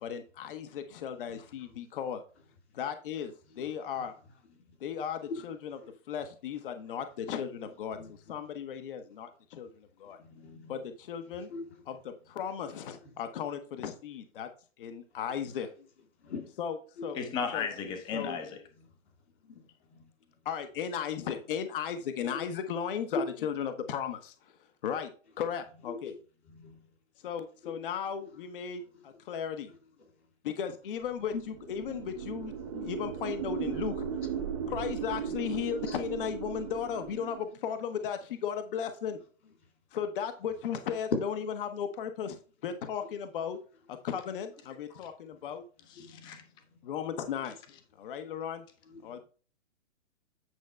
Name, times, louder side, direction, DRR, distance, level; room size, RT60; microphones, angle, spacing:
voice 1, 0.0-2.2 2.7-4.1 4.8-5.5 6.1-8.0 8.3-10.2 10.7-11.5 12.1-14.5 14.8-15.7 16.6-16.7 17.0-17.2 17.5-17.7 18.1-18.4 20.4-24.5 24.8-25.1 25.4-26.1 27.2-29.7 30.4-31.3 31.7-32.5 32.8-34.1 34.7-39.2 39.9-41.1 41.6-43.6 43.9-45.6 46.8-47.6 48.0-48.6 49.0-49.2, left 8 dB, 45° left, 1.0 m, -36 dB
voice 2, 1.1-1.9 3.5-4.1 4.5-4.8 5.2-5.5 5.8-6.0 7.2-8.4 9.6-9.7 10.0-10.9 11.3-11.9 13.0-13.2 15.1-15.4 15.8-15.9 16.2-16.5 17.0-17.1 18.7-19.1 19.4-20.4 21.2-21.4 22.3-22.5 22.8-23.5 25.9-26.2 26.4-27.0 27.6-27.8 28.2-28.4 28.8-29.2 29.7-30.3 31.0-31.5 31.9-32.3 32.7-33.0 34.2-34.3 35.8-36.0 36.6-36.7 38.8-38.9 39.4-39.7 40.8-41.2 43.0-43.1 45.8-47.0 47.5-47.6 48.0-48.1 48.8-49.2, left 4 dB, 60° left, 3.7 m, -43 dB
voice 3, 17.2-18.6 46.2-46.4, left 6 dB, 10° left, 0.7 m, -34 dB
sound 1, 31.3-37.4, right 7 dB, 25° right, 0.6 m, -37 dB
9.4 x 5.3 x 3.3 m
hypercardioid pair, 155°, 39 cm